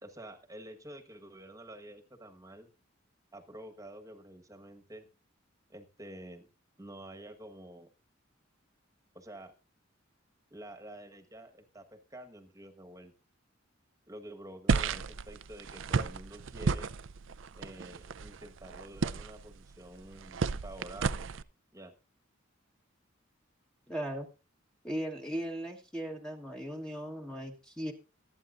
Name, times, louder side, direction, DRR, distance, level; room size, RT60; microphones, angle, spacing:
voice 1, 0.0-2.7 3.3-5.1 5.7-6.5 6.8-7.9 9.1-9.5 10.5-13.1 14.1-16.9 17.5-21.3 21.7-21.9, right 1 dB, 15° right, 6 dB, 1.3 m, -49 dB
sound 1, 14.7-21.4, right 4 dB, 70° right, 0.5 m, -33 dB
voice 2, 23.9-24.3 24.8-27.9, equal, 5° left, 2 dB, 1.2 m, -37 dB
24.0 x 9.0 x 2.5 m, 0.30 s
head